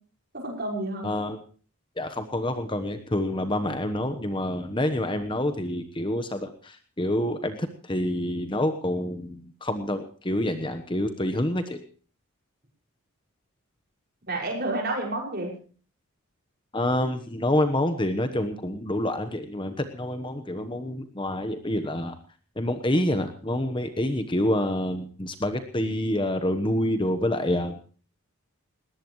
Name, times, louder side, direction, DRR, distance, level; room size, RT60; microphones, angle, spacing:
voice 1, 0.3-1.1 14.3-15.5, right 2 dB, 45° right, 0 dB, 5.7 m, -30 dB
voice 2, 1.0-1.4 2.0-11.8 16.7-22.2 22.6-27.8, left 1 dB, 20° left, 8 dB, 1.1 m, -27 dB
20.0 x 18.0 x 3.1 m, 0.40 s
head